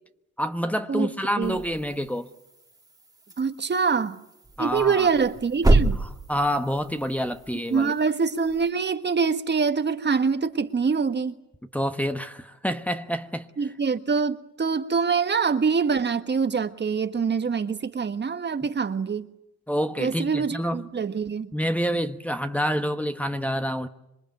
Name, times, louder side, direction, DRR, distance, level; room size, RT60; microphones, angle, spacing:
voice 1, 0.4-2.3 4.6-5.1 6.3-7.9 11.7-13.5 19.7-20.8 21.5-23.9, equal, 5° left, 1.2 m, -27 dB
sound 1, 1.4-8.7, right 2 dB, 10° right, 1.9 m, -29 dB
voice 2, 3.4-4.2 4.6-6.0 7.7-11.3 13.6-19.3 20.0-21.5, right 5 dB, 35° right, 1.5 m, -25 dB
27.0 x 23.0 x 9.2 m
cardioid pair, 90°, 30 cm